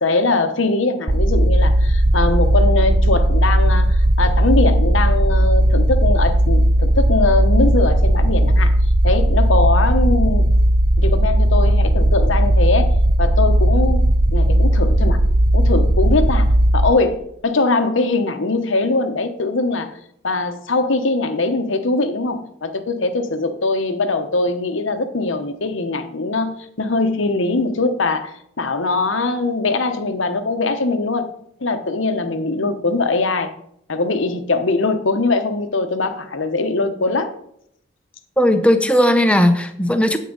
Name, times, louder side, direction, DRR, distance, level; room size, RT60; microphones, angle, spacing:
voice 1, 0.0-8.7 9.0-10.5 11.0-15.2 15.5-19.9 20.2-31.3 31.6-33.5 33.9-37.3, left 3 dB, 70° left, 8 dB, 1.0 m, -21 dB
sound 1, 1.1-16.9, right 1 dB, 25° right, 0.5 m, -16 dB
voice 2, 38.4-40.2, equal, 5° left, 7 dB, 0.8 m, -16 dB
9.5 x 8.4 x 4.0 m, 0.71 s
head